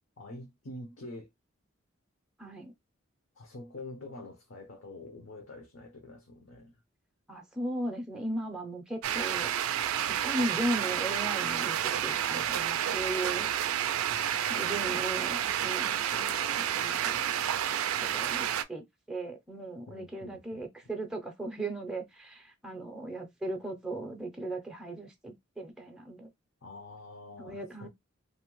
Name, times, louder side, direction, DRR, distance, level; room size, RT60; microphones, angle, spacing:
voice 1, 0.2-1.3 3.4-6.8 14.1-15.2 19.9-20.6 26.6-27.9, left 2 dB, 70° left, 0.7 m, -46 dB
voice 2, 2.4-2.7 7.3-9.5 10.1-13.5 14.5-17.3 18.1-26.3 27.4-27.9, right 1 dB, 5° right, 0.5 m, -37 dB
sound 1, 9.0-18.6, right 10 dB, 85° right, 0.3 m, -30 dB
2.7 x 2.1 x 3.0 m
head